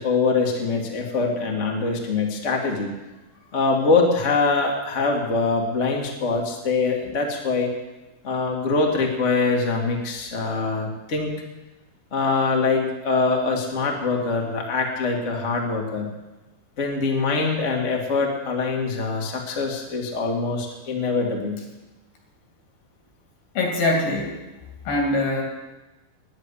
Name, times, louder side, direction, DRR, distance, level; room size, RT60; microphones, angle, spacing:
voice 1, 0.0-2.9 3.5-7.7 8.2-11.3 12.1-16.1 16.8-21.6, left 4 dB, 35° left, 0 dB, 1.2 m, -23 dB
voice 2, 23.6-24.4 24.9-25.4, left 2 dB, 70° left, 1 dB, 4.4 m, -22 dB
10.5 x 9.9 x 9.8 m, 1.1 s
omnidirectional pair, 4.6 m